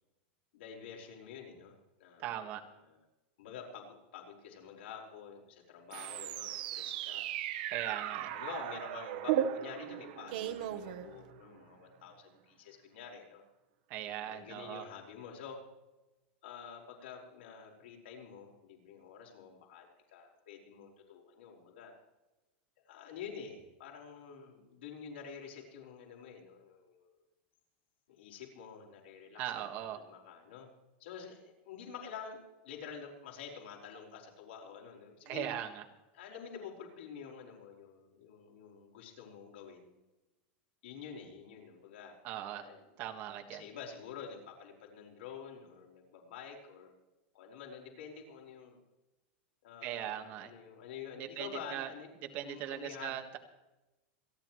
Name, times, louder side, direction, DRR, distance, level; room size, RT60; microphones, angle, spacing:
voice 1, 0.5-2.4 2.8-3.0 3.4-7.2 8.0-13.4 14.2-15.6 16.4-22.0 22.9-27.2 28.2-30.7 31.0-35.5 36.1-40.0 40.8-42.1 42.5-42.8 43.5-46.9 47.3-48.8 49.6-53.2, left 7 dB, 90° left, -1 dB, 4.7 m, -48 dB
voice 2, 2.2-2.6 7.7-8.3 13.9-14.8 29.4-30.0 35.2-35.8 42.2-42.7 43.0-43.6 49.8-50.5 51.2-51.9 52.3-53.4, right 11 dB, 35° right, 4 dB, 1.5 m, -39 dB
sound 1, 5.9-11.6, right 11 dB, 50° right, 1.0 m, -36 dB
27.5 x 11.0 x 3.1 m, 1.0 s
supercardioid pair, 180°, 6 cm